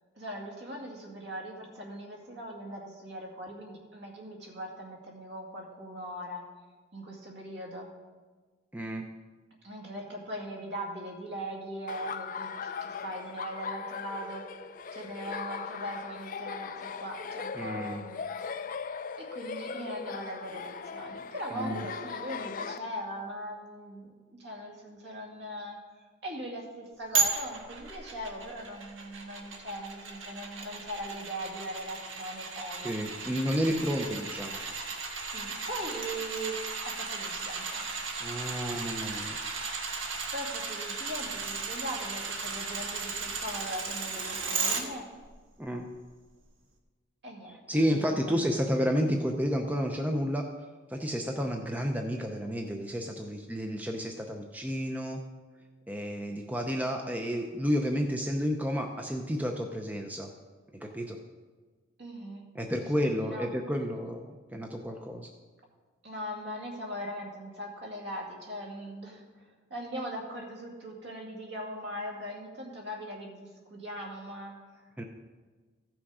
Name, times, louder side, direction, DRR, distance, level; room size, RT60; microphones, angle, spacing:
voice 1, 0.1-6.5 6.9-7.9 9.6-14.5 14.9-18.2 19.2-25.8 26.2-32.9 35.3-38.0 40.3-45.1 47.2-48.4 62.0-62.4 63.0-63.5 66.0-69.5 69.7-74.9, equal, 60° right, -1 dB, 2.2 m, -40 dB
voice 2, 8.7-9.1 17.5-18.0 21.6-21.8 32.7-34.6 38.2-39.4 45.6-45.9 47.7-50.4 50.9-55.2 55.9-60.3 60.7-61.2 62.6-65.3 75.0-75.1, equal, 10° right, 3 dB, 0.6 m, -31 dB
Laughter, 11.9-22.8, left 5 dB, 45° left, 0.4 m, -39 dB
sound 1, 27.1-44.8 45.2-45.3, right 4 dB, 85° right, 1.5 m, -35 dB
15.0 x 6.2 x 4.8 m, 1.4 s
head